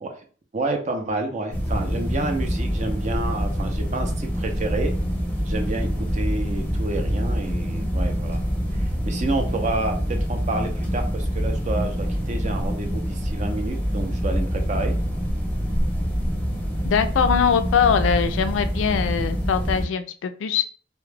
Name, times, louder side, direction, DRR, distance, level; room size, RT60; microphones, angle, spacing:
voice 1, 0.5-4.9 5.5-8.4 8.7-15.0, right 2 dB, 40° right, 4 dB, 0.5 m, -29 dB
sound 1, 1.5-19.8, equal, 10° left, 0.7 m, -25 dB
voice 2, 16.8-20.6, left 7 dB, 80° left, 10 dB, 0.3 m, -22 dB
2.2 x 2.1 x 3.1 m, 0.40 s
head